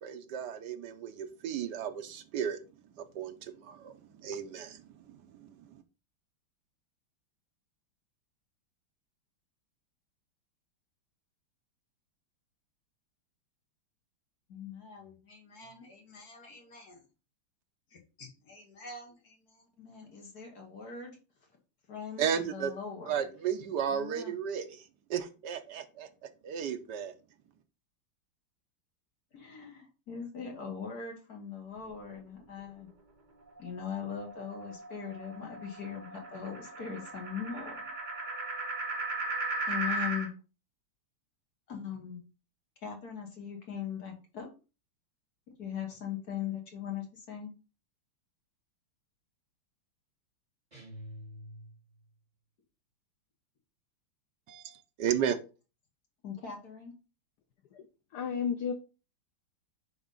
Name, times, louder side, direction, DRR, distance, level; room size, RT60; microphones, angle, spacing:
voice 1, 0.0-2.6 3.0-5.8 22.2-22.7 23.1-26.1 26.4-27.1 54.5-55.4, right 8 dB, 65° right, 1.1 m, -34 dB
voice 2, 14.5-17.0 17.9-21.2 21.9-23.3 23.9-24.3 29.3-32.9 33.6-37.8 39.7-40.3 41.7-42.2 42.8-44.5 45.6-47.5 56.2-56.9, left 7 dB, 50° left, 1.9 m, -41 dB
sound 1, 33.6-40.3, right 2 dB, 35° right, 0.8 m, -37 dB
sound 2, 50.7-52.1, equal, 20° right, 2.6 m, -47 dB
voice 3, 58.1-58.7, left 7 dB, 65° left, 1.1 m, -32 dB
9.3 x 3.5 x 3.8 m
omnidirectional pair, 2.3 m